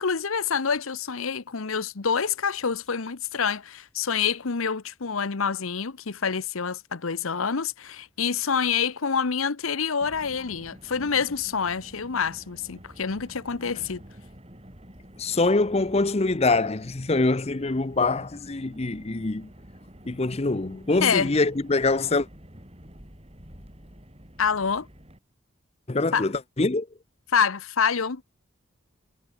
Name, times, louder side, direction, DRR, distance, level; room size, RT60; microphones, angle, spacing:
voice 1, 0.0-14.0 21.0-21.3 24.4-24.9 26.1-26.3 27.3-28.2, left 6 dB, 85° left, 0.9 m, -27 dB
Car, 10.0-25.2, equal, 30° right, 6.1 m, -48 dB
voice 2, 15.2-19.5 20.1-22.3 25.9-26.9, left 3 dB, 30° left, 0.6 m, -24 dB
head